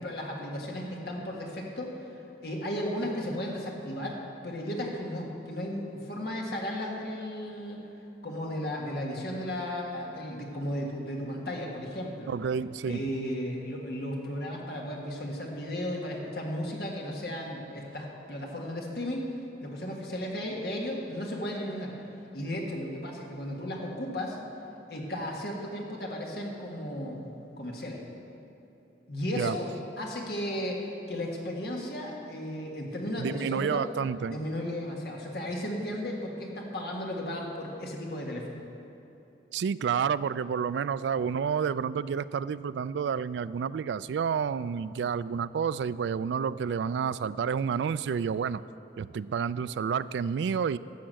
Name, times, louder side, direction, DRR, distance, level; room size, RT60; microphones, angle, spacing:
voice 1, 0.0-7.8 8.2-12.3 12.8-21.9 22.3-24.4 24.9-27.3 27.6-28.0 29.1-33.9 34.3-38.5, left 1 dB, 60° left, -1 dB, 1.7 m, -35 dB
voice 2, 12.3-13.1 29.4-29.6 33.2-34.4 39.5-48.6 49.0-50.8, right 6 dB, 75° right, 16 dB, 0.3 m, -29 dB
11.5 x 7.4 x 7.6 m, 2.9 s
head